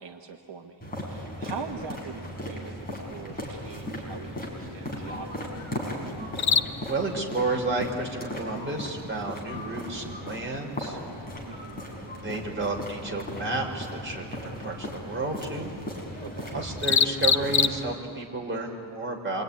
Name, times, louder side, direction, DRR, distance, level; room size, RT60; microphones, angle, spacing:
voice 1, 0.0-5.4 11.5-11.8 16.2-16.6, right 5 dB, 75° right, 3 dB, 1.4 m, -42 dB
sound 1, 0.8-18.3, left 6 dB, 40° left, 0.7 m, -34 dB
sound 2, 0.8-17.8, left 1 dB, 20° left, 5.7 m, -37 dB
voice 2, 6.8-11.2 11.7-15.7 16.5-19.4, right 2 dB, 25° right, 0 dB, 4.2 m, -32 dB
27.0 x 23.0 x 9.6 m, 2.5 s
wide cardioid pair, 175°, 44 cm